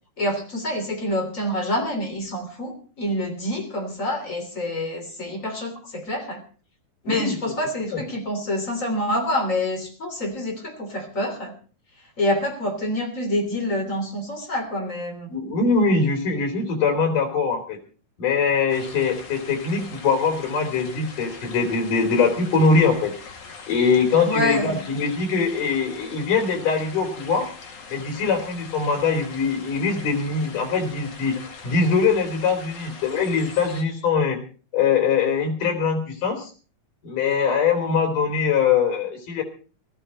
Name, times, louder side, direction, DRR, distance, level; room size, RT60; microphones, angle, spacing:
voice 1, 0.2-6.4 7.1-11.5 12.2-15.3 24.2-24.8, left 1 dB, 25° left, 3 dB, 3.4 m, -27 dB
voice 2, 7.0-7.5 7.9-8.0 15.3-17.8 18.2-23.1 23.7-27.5 27.9-31.4 31.6-34.4 34.7-36.5 37.0-39.4, left 5 dB, 90° left, 5 dB, 4.8 m, -22 dB
sound 1, 18.7-33.8, left 4 dB, 70° left, 3.9 m, -42 dB
18.5 x 14.5 x 4.2 m, 0.38 s
omnidirectional pair, 3.6 m